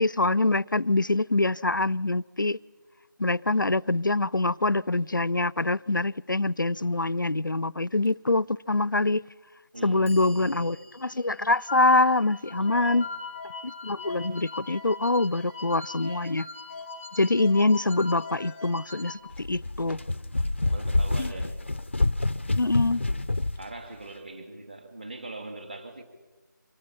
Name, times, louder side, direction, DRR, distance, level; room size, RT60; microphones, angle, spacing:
voice 1, 0.0-2.6 3.2-9.2 9.8-13.1 13.6-16.5 17.1-20.0 21.2-21.3 22.6-23.0, left 2 dB, 85° left, 0.5 m, -25 dB
Clock, 8.1-8.2 9.1-9.2 9.7-15.8, left 1 dB, 10° right, 1.5 m, -56 dB
voice 2, 9.7-10.8 12.5-13.0 20.5-21.6 23.6-26.0, right 2 dB, 30° right, 2.8 m, -41 dB
sound 1, 11.5-19.1, left 4 dB, 10° left, 1.1 m, -40 dB
sound 2, 19.3-23.6, left 2 dB, 35° left, 0.5 m, -27 dB
25.5 x 19.0 x 5.6 m
figure-of-eight pair, 170°, 11 cm